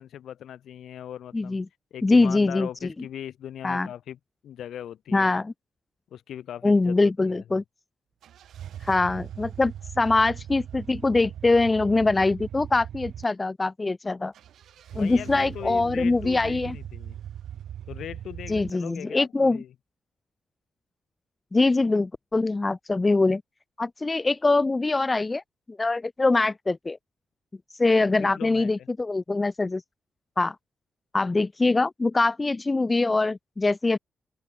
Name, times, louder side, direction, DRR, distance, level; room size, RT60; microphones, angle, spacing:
voice 1, 0.0-1.6 1.9-5.4 6.1-7.6 14.9-17.2 17.9-19.7 28.2-28.9, left 10 dB, 80° left, 1.6 m, -39 dB
voice 2, 1.3-1.7 2.0-2.7 3.6-3.9 5.1-5.5 6.6-7.6 8.8-14.3 15.0-16.8 18.5-19.6 21.5-23.4 23.8-25.4 25.7-27.0 27.8-29.8 30.4-30.6 31.1-34.0, left 3 dB, 20° left, 0.3 m, -23 dB
sound 1, 8.2-13.2 14.3-18.7, right 10 dB, 80° right, 0.4 m, -39 dB
open air
wide cardioid pair, 150°, 0 cm